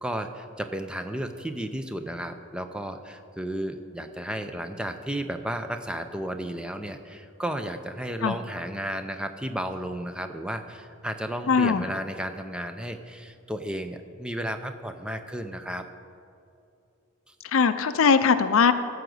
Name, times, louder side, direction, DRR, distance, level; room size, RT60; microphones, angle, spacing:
voice 1, 0.0-15.8, right 1 dB, 5° right, 7 dB, 0.5 m, -33 dB
voice 2, 11.5-11.9 17.5-18.7, left 5 dB, 70° left, 11 dB, 0.5 m, -20 dB
14.5 x 4.9 x 7.8 m, 2.6 s
head